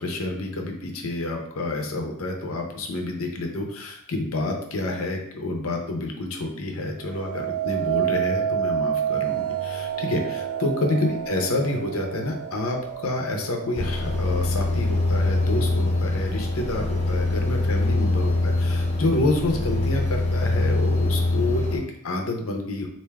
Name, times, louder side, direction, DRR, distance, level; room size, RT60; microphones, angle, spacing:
voice 1, 0.0-22.9, left 2 dB, 70° left, 2 dB, 0.7 m, -28 dB
sound 1, 7.0-16.2 16.7-17.2, right 9 dB, 90° right, 0.3 m, -30 dB
sound 2, 13.8-21.8, left 2 dB, 35° left, 0.9 m, -23 dB
3.3 x 2.6 x 3.4 m, 0.71 s
head